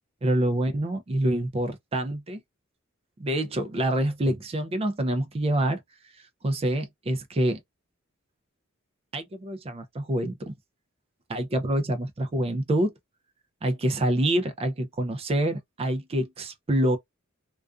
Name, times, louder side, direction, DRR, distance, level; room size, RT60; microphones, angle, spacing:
voice 1, 0.2-2.4 3.2-5.8 6.4-7.6 9.1-10.5 11.3-12.9 13.6-17.0, right 1 dB, 30° right, 0.4 m, -26 dB
2.4 x 2.3 x 2.3 m
head